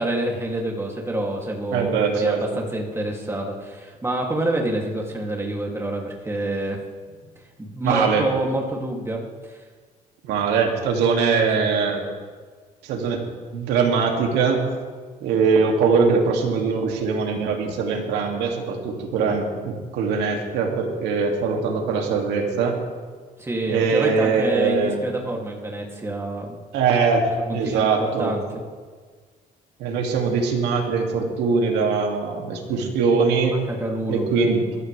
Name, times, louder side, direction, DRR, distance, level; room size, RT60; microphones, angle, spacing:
voice 1, 0.0-6.8 7.6-9.6 11.6-11.7 23.4-26.6 27.4-28.4 32.7-32.8 33.5-34.3 34.6-34.8, right 1 dB, 15° right, -1 dB, 2.8 m, -27 dB
voice 2, 1.7-2.6 7.8-8.3 10.2-12.0 12.8-13.3 13.5-14.7 15.2-22.8 23.7-25.0 26.7-28.4 29.8-33.6 34.1-34.7, right 5 dB, 85° right, 1 dB, 2.6 m, -22 dB
22.0 x 14.0 x 3.4 m, 1.5 s
cardioid pair, 110°, 17 cm